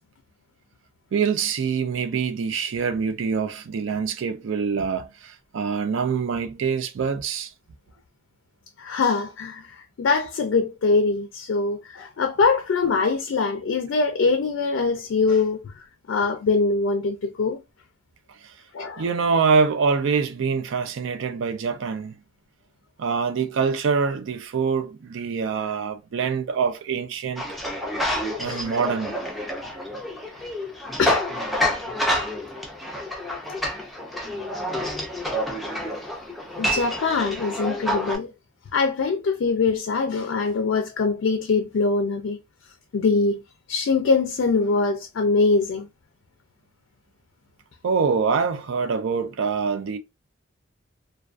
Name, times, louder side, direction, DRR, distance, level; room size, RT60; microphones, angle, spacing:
voice 1, 1.1-7.5 18.4-18.5 19.0-22.2 23.0-27.5 28.4-29.1 47.8-50.0, right 5 dB, 65° right, 0.4 m, -25 dB
voice 2, 8.8-17.6 18.7-19.0 28.4-28.6 31.0-31.2 36.6-38.3 38.7-42.4 42.9-43.4 43.7-45.9, left 4 dB, 65° left, 0.4 m, -23 dB
sound 1, 27.4-38.2, equal, ahead, 0.4 m, -28 dB
2.3 x 2.2 x 2.4 m
head